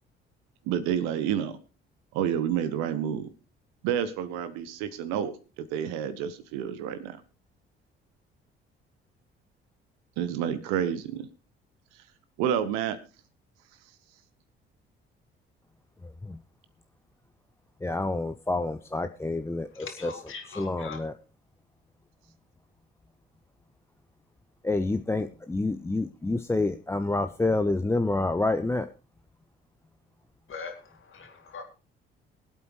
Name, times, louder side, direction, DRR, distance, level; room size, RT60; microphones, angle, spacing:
voice 1, 0.6-1.6 2.1-3.3 3.8-7.2 10.2-11.3 12.4-13.0, right 9 dB, 65° right, 13 dB, 1.2 m, -29 dB
voice 2, 17.8-20.1 20.6-21.1 24.6-28.9, left 2 dB, 10° left, 9 dB, 0.6 m, -28 dB
voice 3, 19.7-21.0 30.5-31.6, left 5 dB, 45° left, 5 dB, 2.8 m, -41 dB
23.0 x 8.4 x 3.1 m, 0.33 s
figure-of-eight pair, 45°, 29 cm